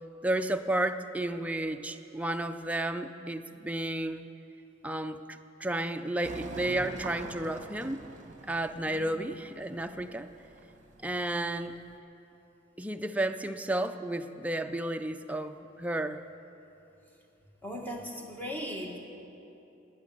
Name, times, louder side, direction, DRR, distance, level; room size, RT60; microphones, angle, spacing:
voice 1, 0.2-4.3 4.8-8.0 8.4-10.3 11.0-11.7 12.8-16.2, right 1 dB, 10° right, 7 dB, 0.5 m, -32 dB
sound 1, 6.2-11.9, right 2 dB, 40° right, 1.0 m, -45 dB
voice 2, 17.6-19.0, equal, 10° left, 0 dB, 1.6 m, -38 dB
17.5 x 9.5 x 6.6 m, 2.9 s
head